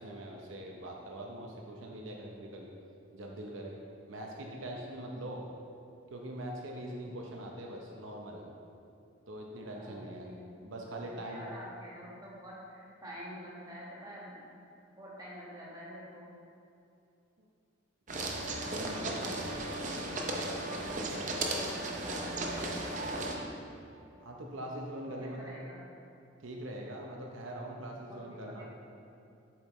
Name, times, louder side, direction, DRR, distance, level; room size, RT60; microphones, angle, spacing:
voice 1, 0.0-2.7 3.1-3.7 4.1-5.4 6.1-8.4 9.3-10.3 10.6-11.5 17.4-17.5 18.7-19.5 21.1-21.2 24.2-25.6 26.4-28.6, right 1 dB, 80° right, -1 dB, 0.8 m, -42 dB
voice 2, 9.7-10.8 11.1-14.3 14.9-16.3 19.1-20.6 21.0-23.4 25.1-25.8 28.1-28.6, equal, 20° right, -7 dB, 1.6 m, -48 dB
sound 1, 18.1-23.3, right 2 dB, 40° right, 0.7 m, -35 dB
8.1 x 7.1 x 3.1 m, 2.6 s
head